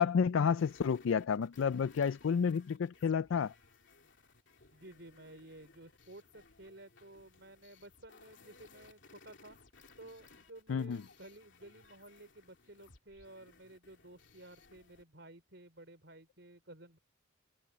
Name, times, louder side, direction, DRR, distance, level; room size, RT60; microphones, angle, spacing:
voice 1, 0.0-3.5 10.7-11.0, left 6 dB, 75° left, 0.4 m, -30 dB
sound 1, 0.6-15.0, left 3 dB, 60° left, 3.0 m, -61 dB
voice 2, 4.7-9.6 10.0-17.0, right 1 dB, 60° right, 5.1 m, -54 dB
head